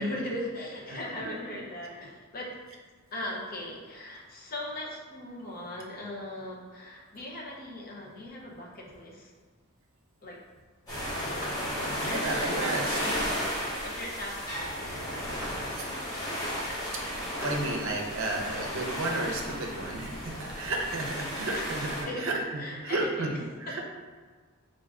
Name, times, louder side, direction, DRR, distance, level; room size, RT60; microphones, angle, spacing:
voice 1, 0.0-2.6 3.1-9.3 10.2-10.4 11.4-12.2 12.5-13.3 13.8-15.8 21.5-21.7 22.0-23.4, left 1 dB, 40° left, -2 dB, 0.6 m, -39 dB
voice 2, 0.6-1.4 12.0-13.0 15.7-15.9 17.4-22.4 22.8-23.8, right 2 dB, 65° right, 1 dB, 0.6 m, -33 dB
sound 1, 10.9-22.0, equal, 15° left, 1.0 m, -34 dB
sound 2, 11.3-18.8, right 1 dB, 10° right, 0.5 m, -49 dB
3.5 x 2.5 x 3.5 m, 1.5 s
head